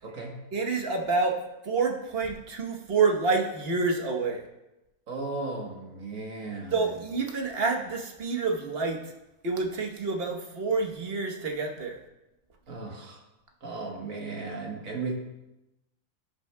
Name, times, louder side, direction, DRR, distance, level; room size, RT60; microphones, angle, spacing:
voice 1, 0.0-0.4 5.1-6.9 12.7-13.2 13.6-15.1, right 3 dB, 60° right, 0 dB, 1.6 m, -36 dB
voice 2, 0.5-4.4 6.7-9.1 9.4-12.0, right 4 dB, 45° right, 2 dB, 1.1 m, -28 dB
16.0 x 6.0 x 2.2 m, 0.96 s
omnidirectional pair, 1.7 m